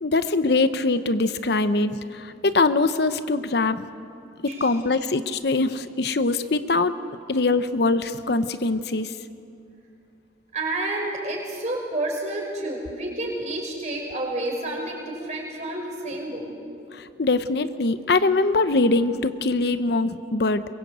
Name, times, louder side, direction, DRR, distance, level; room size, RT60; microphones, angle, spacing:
voice 1, 0.0-3.9 4.4-6.9 7.3-9.1 17.2-20.7, left 3 dB, 60° left, 11 dB, 0.8 m, -22 dB
voice 2, 10.5-17.0, right 1 dB, 40° right, 0 dB, 5.2 m, -30 dB
23.0 x 22.5 x 8.0 m, 2.5 s
head